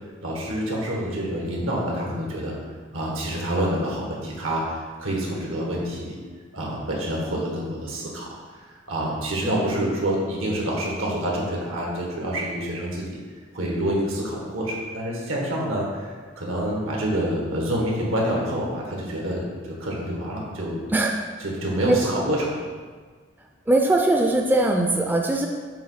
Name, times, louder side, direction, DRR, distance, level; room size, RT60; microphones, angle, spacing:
voice 1, 0.2-2.5 2.9-6.2 6.5-8.3 8.9-13.2 13.5-19.5 19.8-20.8 21.4-22.6, right 1 dB, 85° right, -3 dB, 1.6 m, -27 dB
voice 2, 21.8-22.2 23.7-25.5, right 2 dB, 10° right, 1 dB, 0.3 m, -21 dB
7.0 x 3.1 x 5.7 m, 1.5 s
head